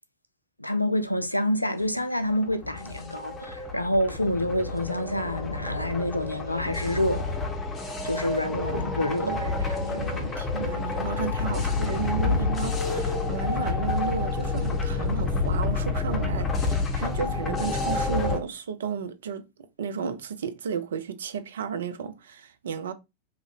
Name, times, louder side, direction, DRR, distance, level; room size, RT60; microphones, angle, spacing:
voice 1, 0.6-7.3 8.0-9.4, left 1 dB, 85° left, 0.3 m, -27 dB
sound 1, 2.3-18.4, left 3 dB, 20° left, 0.7 m, -29 dB
voice 2, 9.2-22.9, right 7 dB, 65° right, 0.4 m, -33 dB
2.8 x 2.5 x 2.7 m
figure-of-eight pair, 90°, 0 cm